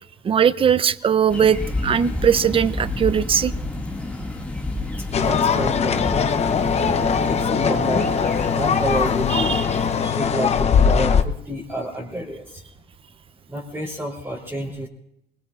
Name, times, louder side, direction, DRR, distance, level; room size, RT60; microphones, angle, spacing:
voice 1, 0.2-3.5 9.3-9.6, right 8 dB, 30° right, 16 dB, 0.6 m, -19 dB
sound 1, 1.3-9.9, left 2 dB, 10° left, 2.0 m, -30 dB
sound 2, 5.1-11.2, left 6 dB, 40° left, 0.8 m, -20 dB
voice 2, 5.2-6.1 7.0-8.1 8.5-12.6 13.5-14.9, equal, 10° right, -6 dB, 3.2 m, -29 dB
28.5 x 20.5 x 2.4 m, 0.77 s
cardioid pair, 110°, 17 cm